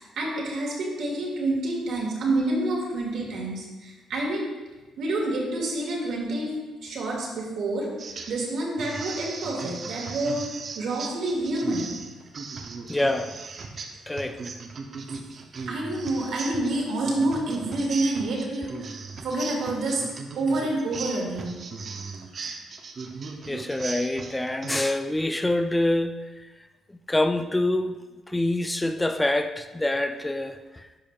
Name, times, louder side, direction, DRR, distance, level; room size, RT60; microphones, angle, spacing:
voice 1, 0.0-4.5 5.0-7.9 8.3-10.5 10.8-11.9 15.7-18.9 19.2-20.0 20.4-21.6, right 2 dB, 75° right, 1.8 m, -28 dB
sound 1, 8.0-8.5 8.8-24.8, right 4 dB, 50° right, 0.6 m, -38 dB
voice 2, 12.9-13.4 14.1-14.5 23.5-26.3 27.1-28.0 28.3-30.9, left 1 dB, 10° left, 0.3 m, -26 dB
10.5 x 5.0 x 2.3 m
cardioid pair, 90°, 0 cm